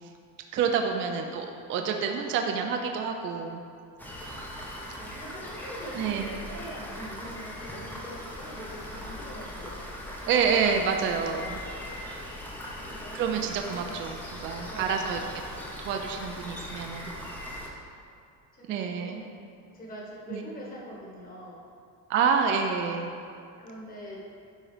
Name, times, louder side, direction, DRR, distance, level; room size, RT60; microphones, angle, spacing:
voice 1, 0.5-3.6 6.0-6.3 10.3-11.6 11.9-12.2 13.1-15.2 15.8-17.1 18.7-19.2 20.3-20.5 22.1-23.1, right 6 dB, 35° right, 3 dB, 0.4 m, -28 dB
Rain, 4.0-17.7, left 1 dB, 5° left, 0.7 m, -40 dB
voice 2, 4.9-9.8 12.8-13.2 13.7-13.8 14.7-15.2 18.5-19.3 19.7-21.6 23.6-24.3, equal, 25° left, -3 dB, 1.4 m, -43 dB
10.0 x 3.8 x 4.9 m, 2.4 s
cardioid pair, 175°, 37 cm